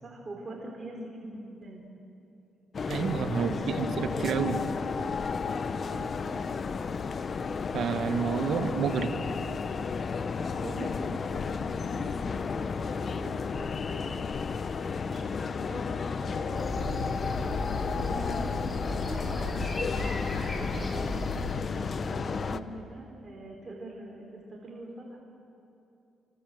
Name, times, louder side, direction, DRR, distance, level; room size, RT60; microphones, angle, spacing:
voice 1, 0.0-1.8 3.4-4.7 5.8-6.5 8.6-9.1 10.5-14.2 15.0-17.0 17.8-19.8 20.2-21.3 22.0-25.2, right 1 dB, 30° right, -1 dB, 4.6 m, -43 dB
sound 1, 2.7-22.6, left 5 dB, 45° left, 1.0 m, -32 dB
voice 2, 2.9-4.6 7.7-9.1, right 6 dB, 65° right, 8 dB, 1.6 m, -29 dB
sound 2, 16.5-21.5, left 2 dB, 20° left, 6.7 m, -35 dB
29.0 x 24.5 x 7.9 m, 2.8 s
cardioid pair, 90°, 0 cm